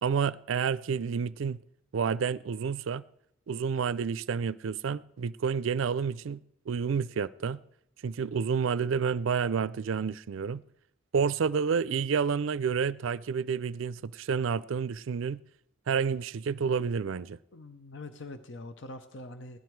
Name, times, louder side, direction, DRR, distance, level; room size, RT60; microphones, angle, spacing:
voice 1, 0.0-1.6 1.9-3.0 3.5-6.4 6.7-7.6 8.0-10.6 11.1-15.4 15.9-17.4, right 6 dB, 75° right, 0.4 m, -29 dB
voice 2, 17.5-19.6, left 2 dB, 60° left, 0.7 m, -44 dB
16.5 x 11.5 x 4.6 m
head